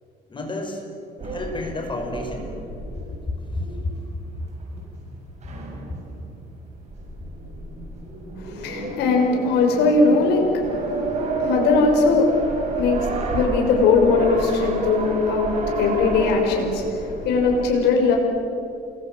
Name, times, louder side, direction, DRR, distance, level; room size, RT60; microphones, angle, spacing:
voice 1, 0.3-0.8 1.2-2.5 3.5-3.9, left 2 dB, 30° left, 4 dB, 5.5 m, -30 dB
sound 1, 1.2-17.6, right 2 dB, 40° right, 7.5 m, -30 dB
voice 2, 8.4-18.2, left 4 dB, 85° left, 1 dB, 6.1 m, -20 dB
29.5 x 23.0 x 8.1 m, 2.6 s
cardioid pair, 110°, 17 cm